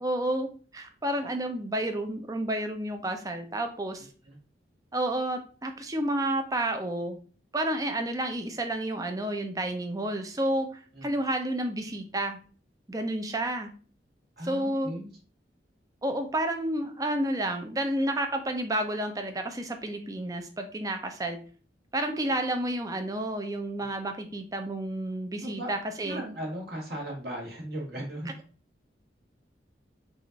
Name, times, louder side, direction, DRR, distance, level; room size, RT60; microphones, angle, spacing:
voice 1, 0.0-4.1 4.9-7.2 7.5-12.4 12.9-13.7 14.4-14.9 16.0-21.4 21.9-26.2, right 1 dB, 20° right, 6 dB, 0.6 m, -30 dB
voice 2, 14.4-15.1 23.8-23.9 25.4-25.7 26.0-28.3, right 1 dB, 60° right, -2 dB, 1.6 m, -37 dB
4.9 x 2.6 x 4.0 m, 0.41 s
head